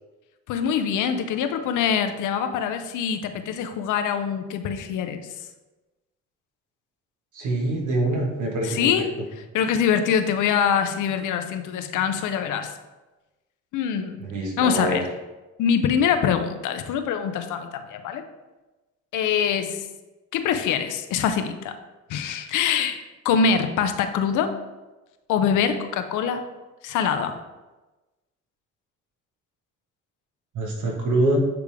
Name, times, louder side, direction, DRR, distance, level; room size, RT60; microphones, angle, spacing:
voice 1, 0.5-5.3 8.6-9.1 9.5-12.7 13.7-14.2 14.6-15.0 15.6-18.2 19.1-19.9 20.3-21.8 22.1-23.0 23.2-24.5 25.3-26.4 26.8-27.4, left 7 dB, 80° left, 8 dB, 0.6 m, -24 dB
voice 2, 7.3-8.9 14.2-15.0 30.5-31.4, right 2 dB, 75° right, 0 dB, 1.5 m, -24 dB
8.5 x 3.4 x 3.4 m, 1.1 s
cardioid pair, 90°, 30 cm